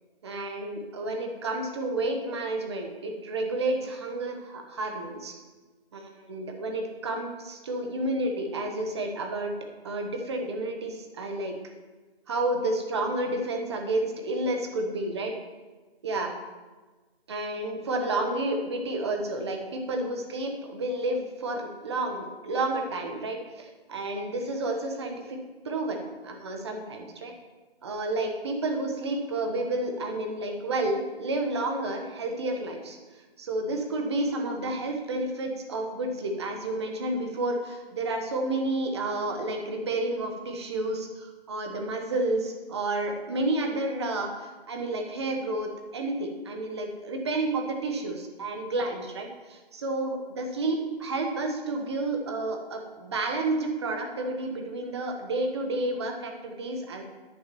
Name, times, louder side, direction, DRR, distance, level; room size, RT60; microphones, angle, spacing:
voice 1, 0.2-5.3 5.9-9.5 9.8-11.5 12.3-15.3 16.0-16.3 17.3-25.4 25.6-27.3 27.8-57.0, right 2 dB, 25° right, 4 dB, 1.1 m, -30 dB
12.0 x 10.5 x 3.0 m, 1.3 s
figure-of-eight pair, 160°, 31 cm